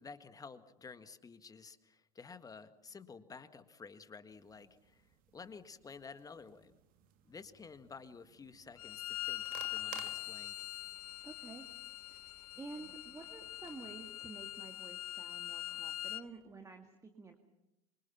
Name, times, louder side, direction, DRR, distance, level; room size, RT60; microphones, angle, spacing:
voice 1, 0.0-6.8 7.2-10.7, left 5 dB, 20° left, 11 dB, 1.7 m, -52 dB
sound 1, 4.3-14.1, right 10 dB, 45° right, 2.3 m, -58 dB
Bowed string instrument, 8.8-16.2, left 14 dB, 65° left, 0.8 m, -43 dB
voice 2, 11.2-11.7 12.1-17.4, right 3 dB, 15° right, 4 dB, 2.3 m, -51 dB
27.0 x 24.5 x 5.9 m, 0.89 s
figure-of-eight pair, 75°, 20 cm